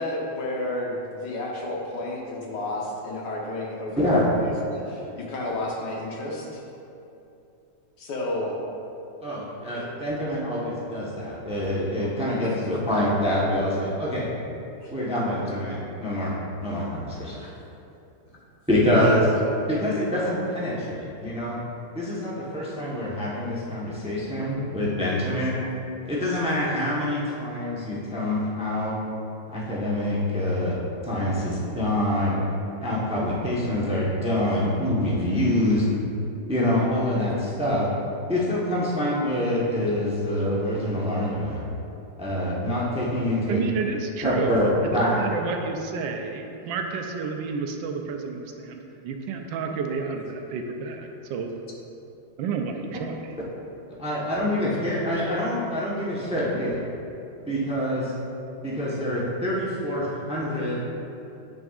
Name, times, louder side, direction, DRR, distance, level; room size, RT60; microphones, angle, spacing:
voice 1, 0.0-6.6 8.0-8.5 9.7-9.9 14.8-14.9 17.3-17.5 19.0-19.2 56.0-56.1, left 1 dB, 65° left, -3 dB, 1.6 m, -31 dB
voice 2, 4.0-4.3 9.2-14.3 14.9-17.4 18.7-19.2 19.7-21.6 21.9-25.6 26.0-29.0 29.5-30.8 31.0-32.4 32.8-35.8 36.5-37.9 38.3-41.6 42.2-43.6 44.2-44.7 44.9-45.2 54.0-56.8 57.5-58.1 58.6-60.8, left 1 dB, 5° right, -6 dB, 0.6 m, -25 dB
voice 3, 43.5-51.5 52.4-53.3, right 5 dB, 80° right, 4 dB, 1.3 m, -30 dB
9.1 x 6.2 x 2.4 m, 2.7 s
omnidirectional pair, 2.1 m